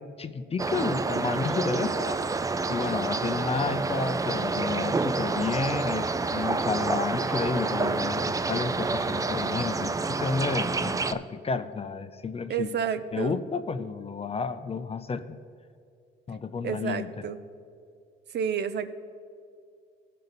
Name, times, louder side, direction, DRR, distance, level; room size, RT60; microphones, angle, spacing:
voice 1, 0.0-2.2 2.7-12.7 13.1-15.4 16.3-17.3, left 5 dB, 30° left, 10 dB, 0.5 m, -31 dB
sound 1, 0.6-11.1, right 3 dB, 15° right, 0.4 m, -28 dB
voice 2, 12.5-13.4 16.6-17.4 18.3-19.0, right 7 dB, 55° right, 11 dB, 0.6 m, -30 dB
16.5 x 5.5 x 4.0 m, 2.4 s
cardioid pair, 90°, 20 cm